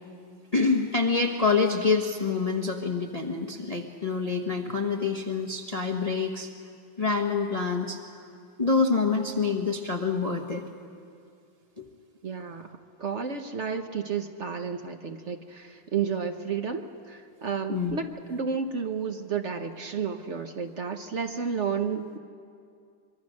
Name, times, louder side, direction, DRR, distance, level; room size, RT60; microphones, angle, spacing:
voice 1, 0.5-6.5 7.0-8.0 8.6-10.6 11.8-11.9 17.7-18.0, left 4 dB, 25° left, 2 dB, 0.9 m, -26 dB
voice 2, 12.2-22.2, right 6 dB, 50° right, 6 dB, 0.9 m, -32 dB
24.5 x 23.0 x 6.4 m, 2.3 s
omnidirectional pair, 2.2 m